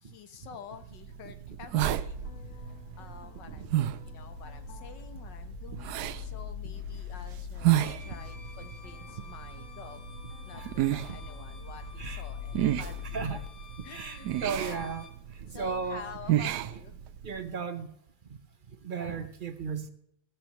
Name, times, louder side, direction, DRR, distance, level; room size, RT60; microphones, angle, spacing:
voice 1, 0.0-10.1 10.4-13.0 13.3-13.4 13.8-15.0 15.5-17.0 18.9-19.3, left 7 dB, 85° left, 9 dB, 1.8 m, -49 dB
sound 1, 0.8-17.4, right 13 dB, 75° right, 1.1 m, -33 dB
sound 2, 1.8-13.5, left 9 dB, 60° left, 0.9 m, -43 dB
Bowed string instrument, 7.7-15.2, left 5 dB, 15° left, 2.4 m, -52 dB
voice 2, 13.1-13.4 13.9-15.0 15.5-16.1 17.2-17.9 18.8-19.9, right 5 dB, 40° right, 10 dB, 0.7 m, -35 dB
15.5 x 13.0 x 3.1 m, 0.74 s
omnidirectional pair, 1.9 m